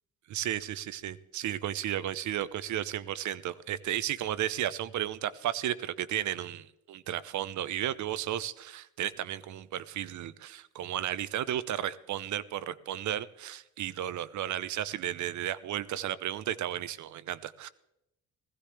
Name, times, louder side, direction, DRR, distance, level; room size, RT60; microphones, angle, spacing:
voice 1, 0.3-17.7, right 11 dB, 60° right, 16 dB, 0.8 m, -34 dB
17.0 x 15.0 x 3.4 m, 0.87 s
cardioid pair, 85°, 32 cm